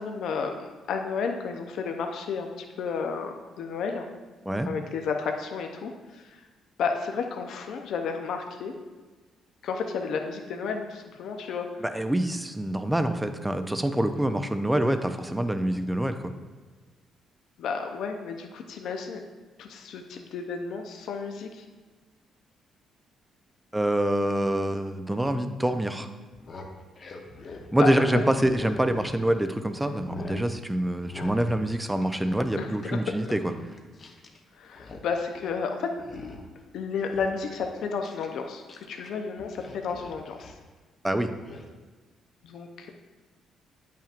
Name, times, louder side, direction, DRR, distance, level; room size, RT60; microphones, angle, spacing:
voice 1, 0.0-4.1 4.7-6.4 6.8-8.7 9.6-11.7 17.6-19.2 19.6-21.6 27.4-28.2 32.6-33.0 34.6-35.9 36.7-40.5 42.4-42.9, left 5 dB, 75° left, 4 dB, 0.6 m, -32 dB
voice 2, 11.8-16.3 23.7-26.1 27.7-33.5 41.0-41.3, right 1 dB, 10° right, 8 dB, 0.5 m, -26 dB
sound 1, 26.2-29.5 29.8-30.5 31.1-31.7 31.9-34.4 34.6-35.1 35.3-35.6 36.0-36.6 37.0-39.1 39.4-40.6 41.5-41.7, left 2 dB, 45° left, 0.8 m, -43 dB
8.8 x 5.7 x 2.5 m, 1.3 s
cardioid pair, 90°, 0 cm